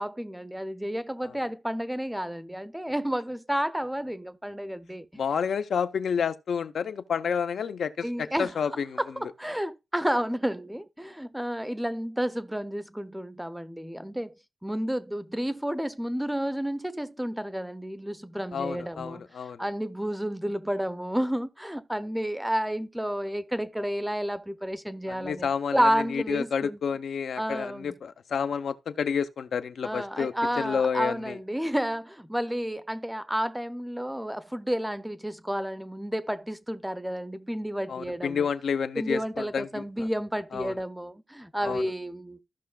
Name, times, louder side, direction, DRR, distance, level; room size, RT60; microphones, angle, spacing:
voice 1, 0.0-5.1 8.0-8.5 9.0-14.3 14.6-19.3 19.6-26.8 27.4-27.9 29.8-38.5 39.0-42.4, equal, 5° right, 0.5 m, -31 dB
voice 2, 5.2-9.0 18.5-19.6 25.1-31.4 37.9-40.1 40.5-40.8 41.6-41.8, left 6 dB, 80° left, 0.6 m, -30 dB
14.5 x 5.7 x 2.3 m
wide cardioid pair, 105°, 0 cm